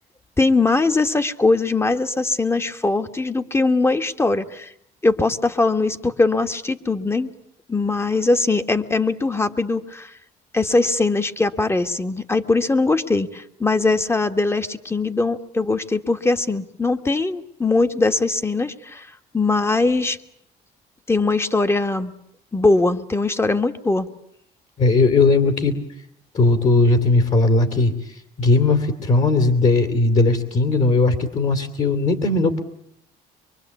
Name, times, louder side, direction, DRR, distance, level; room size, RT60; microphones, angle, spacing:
voice 1, 0.4-4.7 5.0-7.3 7.7-10.1 10.5-19.1 19.3-20.2 21.1-22.1 22.5-24.1, left 3 dB, 15° left, 9 dB, 1.5 m, -21 dB
voice 2, 24.8-25.8 26.3-32.6, left 3 dB, 45° left, 8 dB, 2.7 m, -18 dB
24.5 x 24.0 x 8.4 m, 0.73 s
cardioid pair, 110°, 17 cm